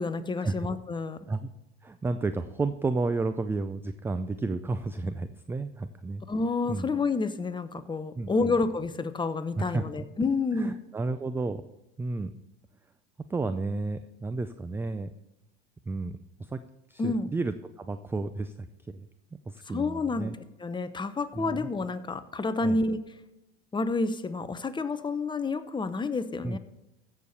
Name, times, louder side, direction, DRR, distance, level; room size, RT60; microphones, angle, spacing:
voice 1, 0.0-1.2 6.3-10.7 17.0-17.3 19.7-20.3 20.6-23.0 23.7-26.6, left 3 dB, 15° left, 11 dB, 0.9 m, -29 dB
voice 2, 1.8-6.2 6.7-6.9 8.2-8.6 9.6-10.1 10.5-11.6 12.0-12.3 13.3-15.1 15.9-16.6 16.9-19.1 19.5-20.3 21.3-21.7 22.6-22.8 26.4-26.6, right 3 dB, 5° right, 11 dB, 0.3 m, -32 dB
15.0 x 6.8 x 4.2 m, 0.94 s
hypercardioid pair, 90°, 33 cm